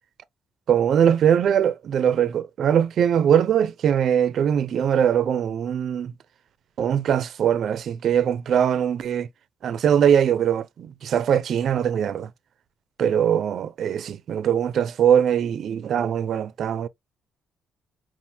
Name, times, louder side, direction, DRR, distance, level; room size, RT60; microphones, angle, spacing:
voice 1, 0.7-6.1 6.8-9.3 9.6-12.3 13.0-16.9, right 9 dB, 65° right, 0.5 m, -21 dB
5.5 x 2.5 x 2.8 m
cardioid pair, 90°, 0 cm